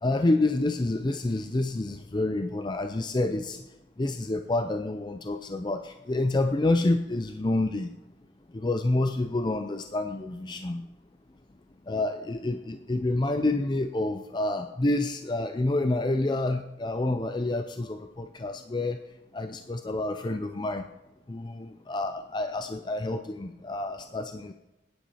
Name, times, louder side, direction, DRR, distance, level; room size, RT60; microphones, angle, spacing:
voice 1, 0.0-3.6 4.0-7.9 8.5-10.8 11.9-19.0 19.3-20.8 21.3-24.5, left 2 dB, 25° left, 7 dB, 0.5 m, -28 dB
20.5 x 10.5 x 4.2 m, 1.0 s
head